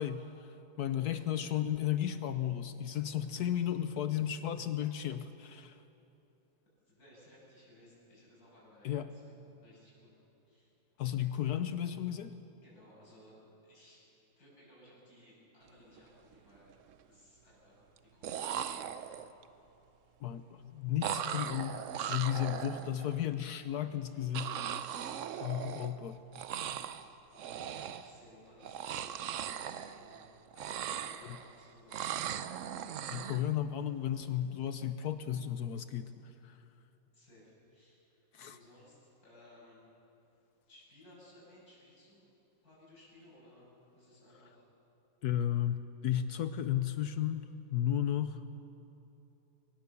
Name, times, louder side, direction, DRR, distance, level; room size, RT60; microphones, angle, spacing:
voice 1, 0.0-5.8 8.8-9.1 11.0-12.4 20.2-24.6 25.4-26.2 31.2-31.4 33.1-36.6 38.3-38.6 45.2-48.4, left 10 dB, 70° left, 11 dB, 1.0 m, -34 dB
voice 2, 6.8-10.1 10.4-10.7 12.6-14.1 14.4-16.7 17.1-19.1 25.1-25.5 27.3-30.3 30.5-32.1 32.7-32.9 37.1-39.8 40.7-42.3 42.6-43.7 44.0-44.7, left 1 dB, 50° left, -6 dB, 7.8 m, -60 dB
sound 1, 15.8-16.0 16.3-16.9 18.0-18.1 18.2-19.4 21.0-23.2 24.3-26.1 26.3-27.1 27.4-28.2 28.6-30.3 30.5-31.5 31.9-33.5, right 9 dB, 85° right, 0.6 m, -39 dB
23.0 x 19.0 x 7.0 m, 3.0 s
omnidirectional pair, 2.1 m